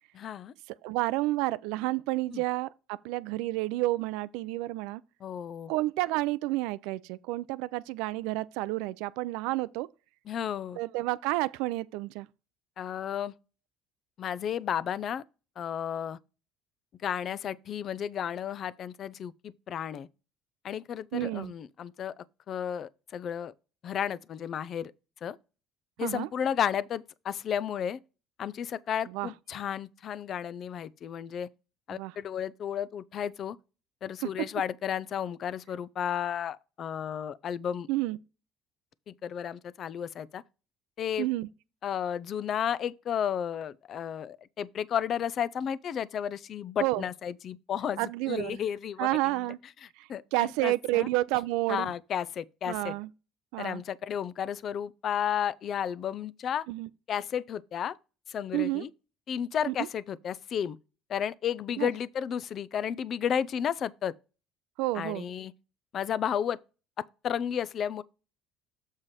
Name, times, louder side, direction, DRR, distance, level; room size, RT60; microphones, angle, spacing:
voice 1, 0.1-0.5 2.3-2.4 5.2-5.7 10.3-10.8 12.8-13.3 14.2-15.2 15.6-16.2 17.0-20.1 20.6-23.5 23.8-24.9 25.2-25.4 26.0-28.0 28.4-31.5 31.9-33.6 34.0-37.9 39.1-40.4 41.0-41.3 41.8-49.5 49.8-51.1 51.7-52.9 53.6-56.6 57.1-58.0 58.3-58.9 59.3-60.8 61.1-64.1 64.9-65.5 65.9-66.6 67.2-68.0, left 9 dB, 50° left, 0.5 m, -33 dB
voice 2, 0.8-5.0 5.7-9.9 10.8-12.3 21.1-21.5 26.0-26.3 29.1-29.3 31.9-32.1 37.9-38.2 41.2-41.5 46.8-47.0 48.0-48.6 49.0-49.6 50.0-51.9 52.7-53.1 53.5-53.8 56.7-56.9 58.5-58.8 59.7-59.9 61.8-61.9 64.8-65.2, right 18 dB, 80° right, 0.4 m, -30 dB
7.3 x 4.9 x 4.2 m
supercardioid pair, 90°, 0 cm